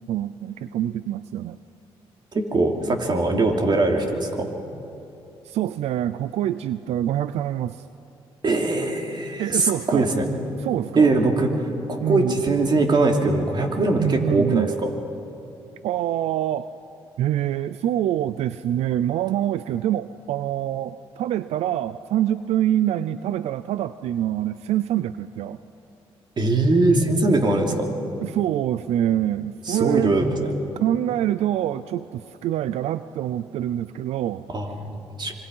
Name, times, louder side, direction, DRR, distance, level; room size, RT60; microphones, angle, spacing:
voice 1, 0.1-1.6 5.4-7.9 9.4-10.1 10.6-11.2 12.0-12.4 14.0-14.7 15.8-16.7 17.2-25.6 28.2-30.1 30.8-34.5, right 11 dB, 85° right, 14 dB, 0.5 m, -25 dB
voice 2, 2.3-4.5 8.4-10.3 10.9-11.5 11.9-14.7 26.4-27.9 29.7-30.3 34.5-35.3, right 2 dB, 45° right, 2 dB, 3.1 m, -21 dB
26.0 x 23.5 x 5.5 m, 2.8 s
cardioid pair, 80°, 11 cm